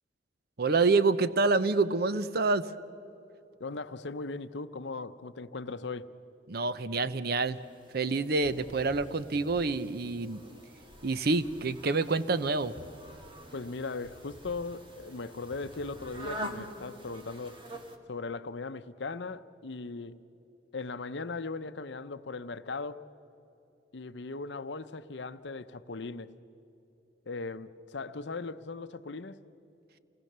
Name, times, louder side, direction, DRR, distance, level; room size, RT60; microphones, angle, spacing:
voice 1, 0.6-2.7 6.5-7.6 7.9-10.4 11.0-12.7, right 3 dB, 55° right, 0.7 m, -27 dB
voice 2, 3.6-6.1 13.5-17.6 18.1-20.2 20.7-23.1 23.9-26.4 27.3-29.4, left 3 dB, 65° left, 0.7 m, -38 dB
sound 1, 7.4-18.0, right 1 dB, 25° right, 1.7 m, -46 dB
28.0 x 19.5 x 6.7 m
head